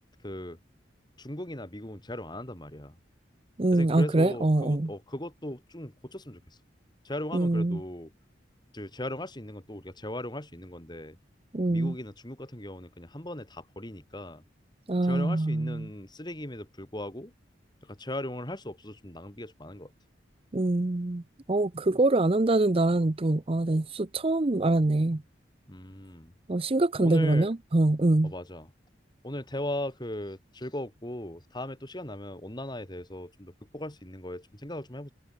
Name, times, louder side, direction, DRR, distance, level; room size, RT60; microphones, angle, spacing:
voice 1, 0.2-0.6 1.2-2.9 3.7-6.6 7.0-8.1 8.7-11.2 11.7-14.4 15.0-17.3 17.8-19.9 25.7-26.3 27.0-27.5 28.2-28.7 29.2-35.1, left 1 dB, 25° left, 3.2 m, -38 dB
voice 2, 3.6-4.9 7.3-7.8 11.5-11.9 14.9-15.9 20.5-21.2 21.5-25.2 26.5-28.3, right 2 dB, 30° right, 0.6 m, -24 dB
open air
head